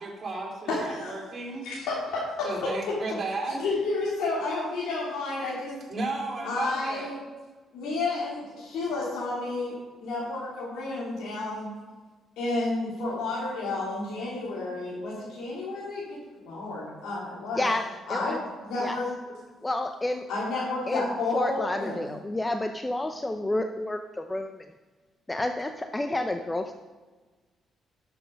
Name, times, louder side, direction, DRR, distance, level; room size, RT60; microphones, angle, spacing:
voice 1, 0.0-1.7 2.4-3.6 3.9-4.0 5.9-7.1, right 2 dB, 40° right, -2 dB, 3.9 m, -34 dB
voice 2, 0.7-1.2 1.6-2.5 3.5-5.8 6.4-7.2 7.7-11.7 12.4-16.2 16.4-17.6 18.1-19.0 20.3-22.0, left 2 dB, 85° left, -7 dB, 3.1 m, -31 dB
voice 3, 17.6-18.4 18.8-18.9 19.6-20.3 20.9-24.7 25.3-26.7, left 1 dB, 15° left, 6 dB, 0.6 m, -30 dB
11.5 x 7.2 x 5.2 m, 1.3 s
cardioid pair, 90°, 0 cm